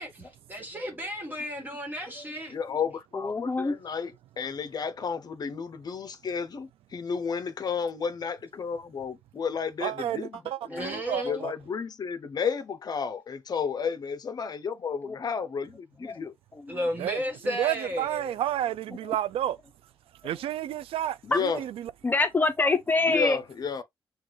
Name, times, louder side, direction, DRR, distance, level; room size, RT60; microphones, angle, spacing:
voice 1, 0.0-2.5 10.7-11.5 16.7-18.4, equal, 20° right, 1.5 m, -34 dB
voice 2, 2.5-16.3 21.2-21.6 23.1-23.8, left 6 dB, 45° left, 0.8 m, -32 dB
voice 3, 3.1-3.7 10.7-10.9 15.0-15.2 16.0-16.7 19.0-19.1 21.3-21.4 22.0-23.4, left 3 dB, 20° left, 0.9 m, -26 dB
voice 4, 9.8-11.5 17.0-17.2 17.6-19.6 20.2-21.7, right 12 dB, 90° right, 0.4 m, -31 dB
5.9 x 2.4 x 3.0 m
cardioid pair, 120°, 9 cm